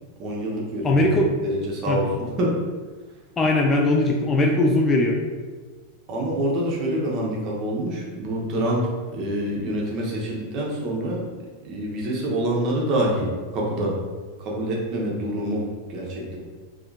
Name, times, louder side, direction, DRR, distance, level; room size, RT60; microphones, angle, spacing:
voice 1, 0.2-2.1 2.4-2.6 6.1-11.3 11.6-14.0 14.4-16.4, right 1 dB, 35° right, -2 dB, 0.9 m, -26 dB
voice 2, 0.8-1.3 1.9-2.0 3.4-5.2, left 2 dB, 20° left, 1 dB, 0.4 m, -20 dB
3.5 x 3.4 x 2.3 m, 1.4 s
figure-of-eight pair, 90°, 0 cm